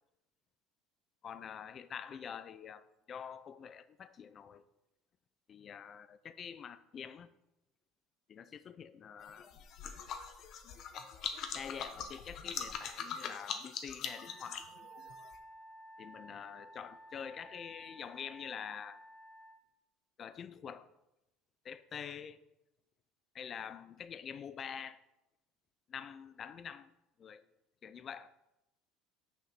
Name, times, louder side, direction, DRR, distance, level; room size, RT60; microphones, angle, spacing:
voice 1, 1.2-4.6 5.5-7.3 8.3-9.5 11.5-14.7 16.0-19.0 20.2-20.9 21.6-22.4 23.3-25.0 25.9-26.9 27.2-27.5 27.8-28.3, left 7 dB, 35° left, 0.5 m, -46 dB
sound 1, 9.2-15.4, left 7 dB, 50° left, 0.9 m, -42 dB
Wind instrument woodwind instrument, 14.1-19.6, right 1 dB, 5° right, 0.8 m, -54 dB
6.7 x 5.1 x 5.8 m
supercardioid pair, 120°, 0 cm